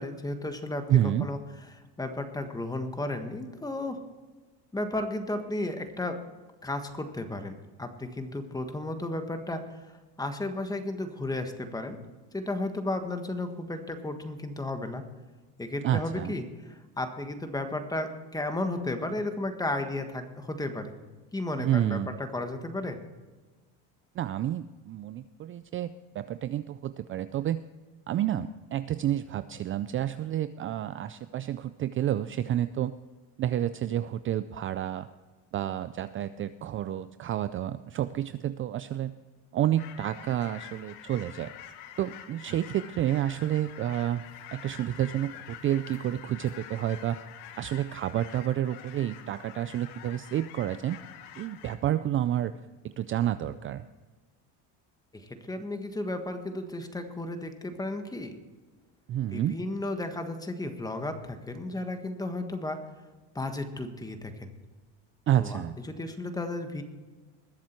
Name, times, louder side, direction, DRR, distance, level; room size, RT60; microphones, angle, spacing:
voice 1, 0.0-1.4 1.7-4.0 4.7-6.2 6.6-9.8 10.2-12.0 12.3-15.1 15.6-20.9 21.3-23.0 55.1-58.3 59.3-62.8 63.3-64.5 65.4-66.8, left 2 dB, 10° left, 7 dB, 1.5 m, -34 dB
voice 2, 0.9-1.3 15.8-16.3 21.6-22.1 24.2-25.9 26.1-27.6 28.1-32.9 33.4-35.1 35.5-39.1 39.5-41.5 42.0-44.2 44.5-47.2 47.6-51.0 51.4-52.5 53.0-53.8 59.1-59.6 65.3-65.7, right 11 dB, 35° right, 13 dB, 0.4 m, -29 dB
sound 1, 39.8-51.8, left 10 dB, 90° left, 1.4 m, -47 dB
20.5 x 7.4 x 4.5 m, 1.3 s
cardioid pair, 120°, 36 cm